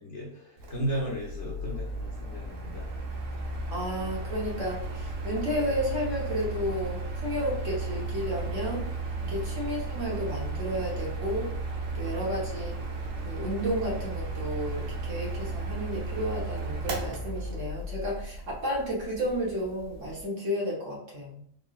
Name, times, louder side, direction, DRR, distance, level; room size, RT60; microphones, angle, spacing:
voice 1, 0.0-2.9 9.2-9.4, right 1 dB, 50° left, -3 dB, 1.0 m, -35 dB
Mechanical fan, 0.6-20.2, right 2 dB, 75° right, 1.2 m, -35 dB
voice 2, 3.7-8.9 9.3-11.5 11.9-12.8 13.2-21.4, equal, 50° right, -3 dB, 1.3 m, -32 dB
3.8 x 3.6 x 2.4 m, 0.66 s
omnidirectional pair, 1.8 m